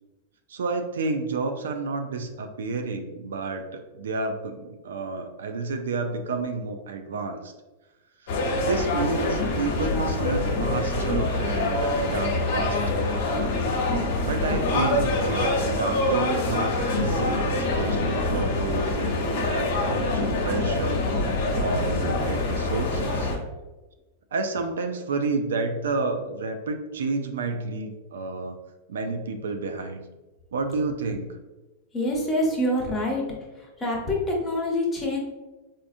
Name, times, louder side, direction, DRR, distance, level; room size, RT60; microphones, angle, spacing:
voice 1, 0.5-7.5 8.2-13.1 14.2-23.3 24.3-28.6 28.9-30.0 30.5-31.3, right 3 dB, 85° right, 6 dB, 0.4 m, -30 dB
sound 1, 8.3-23.4, left 2 dB, 65° left, 0.8 m, -25 dB
voice 2, 31.9-33.2 33.5-35.2, left 1 dB, 15° left, -3 dB, 0.9 m, -26 dB
3.5 x 2.5 x 2.5 m, 1.1 s
hypercardioid pair, 125°, 0 cm